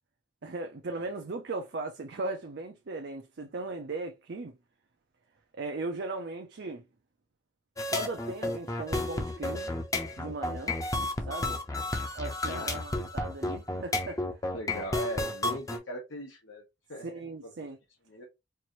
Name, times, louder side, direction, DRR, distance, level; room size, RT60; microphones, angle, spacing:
voice 1, 0.4-4.5 5.5-6.8 7.9-9.7 10.2-10.8 11.3-11.6 12.1-14.2 17.0-17.8, right 3 dB, 55° right, 0.5 m, -37 dB
sound 1, 7.8-15.8, left 2 dB, 15° left, 0.6 m, -32 dB
voice 2, 12.4-12.9 14.5-16.6 16.9-17.5 18.1-18.2, right 1 dB, 75° left, 1.0 m, -39 dB
4.6 x 2.6 x 3.0 m
head